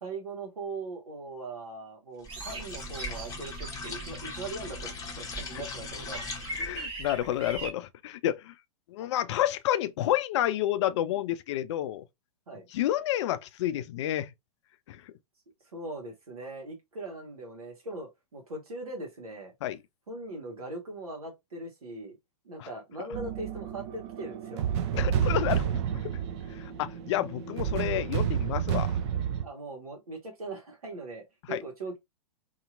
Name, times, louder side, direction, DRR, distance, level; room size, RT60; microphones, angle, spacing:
voice 1, 0.0-6.3 12.5-12.7 15.7-19.5 20.1-22.2 22.4-24.6 29.4-32.0, right 2 dB, 75° right, 1.3 m, -40 dB
sound 1, 2.2-6.9, left 4 dB, 20° left, 0.9 m, -40 dB
sound 2, 2.3-7.7, right 3 dB, 30° right, 1.1 m, -41 dB
voice 2, 6.6-8.5 8.9-12.0 12.7-14.3 14.9-15.0 19.6-19.8 22.6-22.7 24.9-25.8 26.6-29.0 31.5-31.6, left 13 dB, 50° left, 0.4 m, -29 dB
sound 3, 23.1-29.5, right 9 dB, 50° right, 0.6 m, -30 dB
2.8 x 2.7 x 2.4 m
figure-of-eight pair, 100°, 19 cm